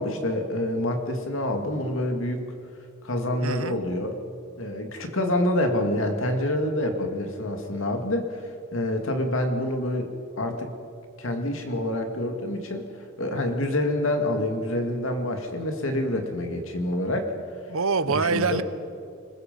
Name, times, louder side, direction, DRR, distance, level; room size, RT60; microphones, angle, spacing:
voice 1, 0.0-2.5 3.0-4.2 4.6-8.4 8.7-10.1 10.4-10.7 11.2-12.9 13.2-17.3 18.1-18.6, left 1 dB, 70° left, 4 dB, 2.3 m, -27 dB
voice 2, 3.4-3.8 17.7-18.6, right 4 dB, 80° right, 13 dB, 1.0 m, -25 dB
26.0 x 21.0 x 5.4 m, 2.4 s
head